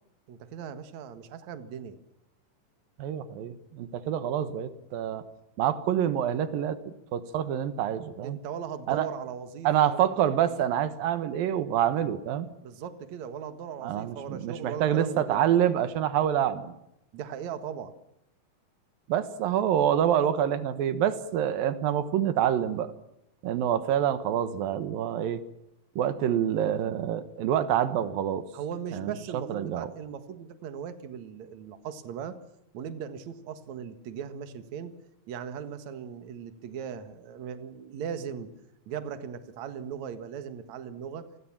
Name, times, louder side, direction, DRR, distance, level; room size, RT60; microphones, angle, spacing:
voice 1, 0.3-2.0 8.2-10.2 12.6-15.5 17.1-17.9 28.5-32.4 32.7-34.9 35.3-38.5 38.9-41.3, right 8 dB, 60° right, 10 dB, 2.7 m, -38 dB
voice 2, 3.0-5.2 5.6-6.8 7.1-8.4 8.9-9.1 9.6-12.5 13.8-16.7 19.1-22.9 23.4-25.4 26.0-28.4 28.9-29.1 29.5-29.9, right 10 dB, 85° right, 12 dB, 3.1 m, -26 dB
29.5 x 21.0 x 7.4 m, 0.85 s
omnidirectional pair, 4.0 m